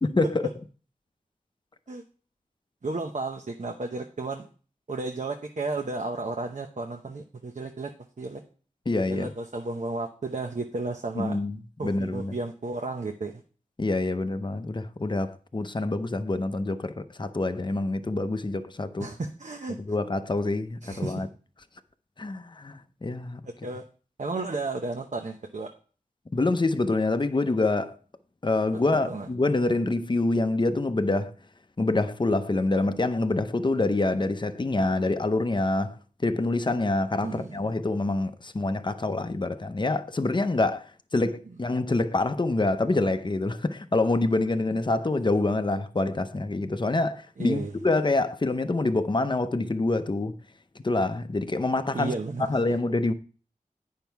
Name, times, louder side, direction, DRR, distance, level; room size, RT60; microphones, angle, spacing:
voice 1, 0.0-0.5 8.9-9.3 11.2-11.6 11.8-12.4 13.8-19.1 19.8-21.3 22.2-23.4 26.3-28.0 28.4-31.3 31.8-36.0 36.2-40.8 41.1-50.4 50.8-52.1 52.4-53.1, left 2 dB, 35° left, 0.7 m, -26 dB
voice 2, 2.8-4.5 4.9-7.9 8.2-8.4 9.1-11.4 11.8-13.3 19.0-19.8 20.8-21.1 23.6-23.8 24.2-25.7 28.9-29.3 37.2-37.6 47.4-47.7 51.9-52.8, right 3 dB, 60° right, 0.8 m, -33 dB
9.1 x 5.6 x 4.6 m
wide cardioid pair, 60°, 14 cm